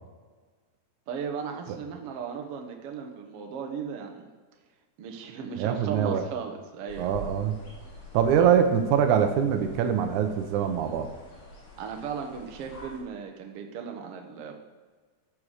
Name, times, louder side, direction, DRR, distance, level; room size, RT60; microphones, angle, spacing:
voice 1, 1.1-4.3 5.0-7.1 8.4-8.5 11.8-14.5, right 6 dB, 60° right, 3 dB, 1.8 m, -36 dB
voice 2, 5.6-6.2 7.0-7.5 8.1-11.1, right 8 dB, 75° right, 5 dB, 2.2 m, -23 dB
sound 1, 6.9-13.0, equal, 90° left, 4.0 m, -46 dB
14.0 x 7.1 x 4.9 m, 1.4 s
omnidirectional pair, 3.5 m